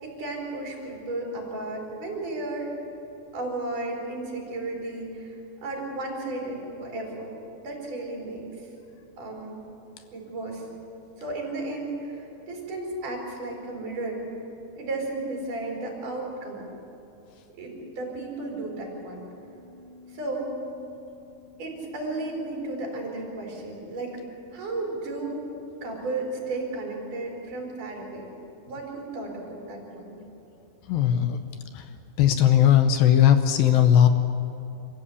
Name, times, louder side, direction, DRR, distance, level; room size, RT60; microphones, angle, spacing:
voice 1, 0.0-2.7 3.3-5.3 5.6-7.3 7.6-8.4 9.2-9.6 10.1-10.7 11.2-14.2 14.8-16.7 17.5-19.2 20.1-20.5 21.6-24.2 24.5-25.4 25.8-28.2 28.7-30.2, right 2 dB, 55° right, -1 dB, 5.3 m, -34 dB
sound 1, 18.1-22.5, left 7 dB, 10° left, 5.3 m, -52 dB
voice 2, 30.9-31.4 32.2-34.1, left 10 dB, 75° left, 8 dB, 2.5 m, -18 dB
26.0 x 15.0 x 8.4 m, 2.8 s
omnidirectional pair, 4.5 m